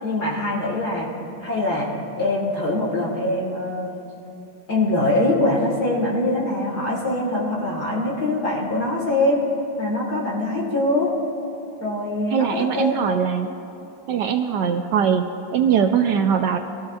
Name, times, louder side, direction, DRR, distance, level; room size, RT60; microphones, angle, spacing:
voice 1, 0.0-1.1 1.4-1.9 2.2-3.9 4.7-9.4 9.8-11.1 11.8-12.5 12.7-13.2, left 2 dB, 50° left, -4 dB, 2.1 m, -23 dB
voice 2, 12.3-13.5 14.1-16.6, right 7 dB, 75° right, 6 dB, 1.0 m, -21 dB
23.0 x 14.5 x 2.4 m, 2.8 s
omnidirectional pair, 2.2 m